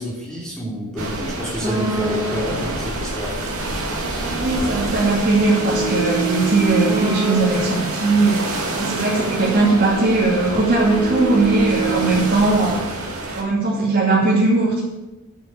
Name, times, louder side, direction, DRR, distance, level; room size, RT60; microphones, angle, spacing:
voice 1, 0.0-3.4, equal, 5° left, -7 dB, 3.4 m, -28 dB
sound 1, 1.0-13.4, right 2 dB, 80° right, 2.4 m, -28 dB
sound 2, 1.6-2.7 3.5-8.0 8.7-12.1, right 4 dB, 20° right, 1.8 m, -27 dB
voice 2, 4.4-12.8 13.4-14.8, right 2 dB, 40° right, -7 dB, 2.9 m, -19 dB
9.1 x 8.5 x 6.8 m, 1.1 s
head